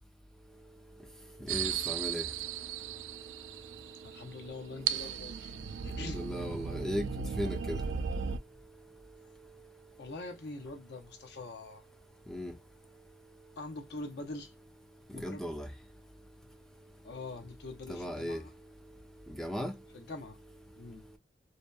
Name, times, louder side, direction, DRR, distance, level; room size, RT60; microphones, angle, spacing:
voice 1, 1.5-2.2 6.0-7.1 7.4-7.8 12.3-12.5 15.2-15.7 17.9-18.4 19.4-19.7, equal, 5° left, 0.4 m, -36 dB
sound 1, 1.5-8.4, right 7 dB, 85° right, 0.3 m, -36 dB
voice 2, 4.0-5.5 5.8-6.3 10.0-11.8 13.6-14.5 15.1-15.4 17.0-18.5 19.9-20.4 20.8-21.0, left 2 dB, 65° left, 0.6 m, -44 dB
2.7 x 2.1 x 2.2 m
head